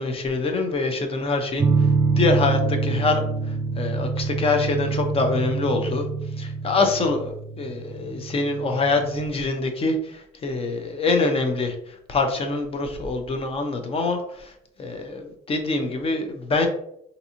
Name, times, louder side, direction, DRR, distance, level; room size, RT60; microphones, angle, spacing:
voice 1, 0.0-16.7, left 3 dB, 35° left, 5 dB, 0.7 m, -25 dB
sound 1, 1.6-9.3, right 4 dB, 30° right, 0.5 m, -26 dB
3.9 x 2.7 x 2.8 m, 0.73 s
cardioid pair, 110°, 17 cm